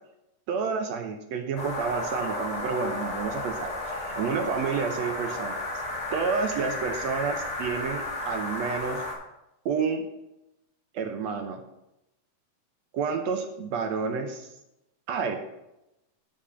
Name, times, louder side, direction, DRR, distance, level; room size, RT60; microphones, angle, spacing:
voice 1, 0.5-5.7 6.1-9.0 9.7-10.1 10.9-11.6 12.9-14.5 15.1-15.4, right 5 dB, 70° right, 5 dB, 1.8 m, -30 dB
sound 1, 1.6-9.1, left 2 dB, 45° left, 2.8 m, -33 dB
11.5 x 4.2 x 6.8 m, 0.90 s
omnidirectional pair, 3.7 m